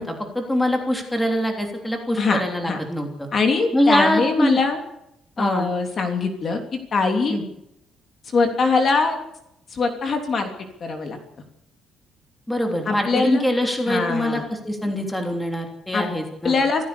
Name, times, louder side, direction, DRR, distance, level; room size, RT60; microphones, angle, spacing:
voice 1, 0.0-3.3 3.7-4.6 5.4-5.7 7.3-7.4 12.5-16.5, left 1 dB, 5° left, 3 dB, 3.2 m, -23 dB
voice 2, 2.2-2.8 3.3-4.8 5.4-7.4 8.2-9.2 9.7-10.5 10.8-11.2 12.8-13.4 13.9-14.4 15.9-16.0 16.4-16.8, left 4 dB, 35° left, 4 dB, 3.2 m, -22 dB
26.5 x 15.5 x 7.0 m, 0.80 s
cardioid pair, 180°, 0 cm